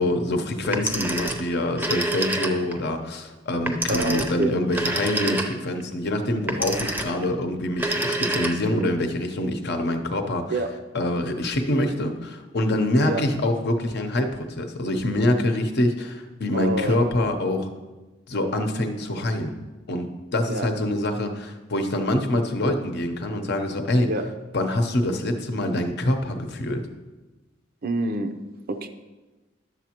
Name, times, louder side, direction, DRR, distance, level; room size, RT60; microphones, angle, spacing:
voice 1, 0.0-10.5 10.9-17.7 18.3-19.5 19.9-20.1 20.3-24.1 24.5-26.8, left 1 dB, 60° left, 6 dB, 0.8 m, -25 dB
Telephone, 0.6-2.8 3.7-5.8 6.5-7.3 7.7-8.9, right 1 dB, 10° right, 0.6 m, -27 dB
voice 2, 3.9-4.5 10.5-10.7 13.1-13.2 16.5-17.0 20.5-20.7 24.0-24.2 27.8-28.3 28.7-28.9, right 2 dB, 50° right, 7 dB, 0.5 m, -26 dB
11.5 x 7.2 x 2.9 m, 1.2 s
head